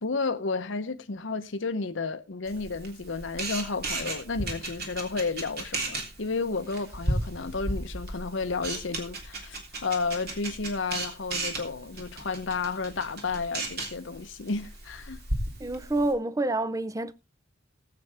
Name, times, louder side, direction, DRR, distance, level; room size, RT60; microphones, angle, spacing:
voice 1, 0.0-15.2, left 4 dB, 80° left, 0.8 m, -32 dB
Camera, 2.5-16.1, right 2 dB, 55° right, 3.2 m, -35 dB
voice 2, 15.6-17.1, right 2 dB, 20° right, 0.6 m, -28 dB
19.5 x 7.9 x 3.4 m
head